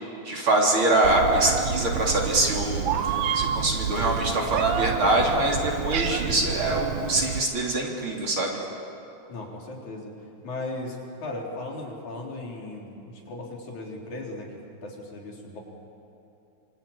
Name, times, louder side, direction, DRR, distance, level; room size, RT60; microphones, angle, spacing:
voice 1, 0.3-2.9 3.3-8.6, right 2 dB, 45° right, -1 dB, 3.9 m, -24 dB
Meow, 1.0-7.4, right 7 dB, 75° right, 1.1 m, -29 dB
voice 2, 9.3-10.1 10.4-15.6, left 2 dB, 80° left, -1 dB, 5.3 m, -37 dB
26.0 x 25.5 x 8.8 m, 2.8 s
omnidirectional pair, 3.3 m